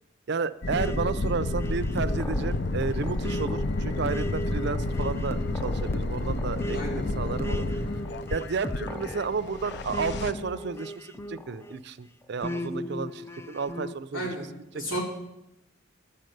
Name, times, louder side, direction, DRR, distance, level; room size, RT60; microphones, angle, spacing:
voice 1, 0.3-7.8 8.3-14.3 14.7-15.0, right 4 dB, 60° right, 12 dB, 0.5 m, -32 dB
sound 1, 0.6-10.3, left 2 dB, 60° left, 0.6 m, -30 dB
sound 2, 0.7-11.8 12.4-14.0, equal, 15° left, 0.5 m, -37 dB
voice 2, 6.7-7.0 14.1-14.4 14.7-15.0, right 1 dB, 80° left, -3 dB, 4.5 m, -32 dB
12.5 x 6.6 x 9.1 m, 0.88 s
head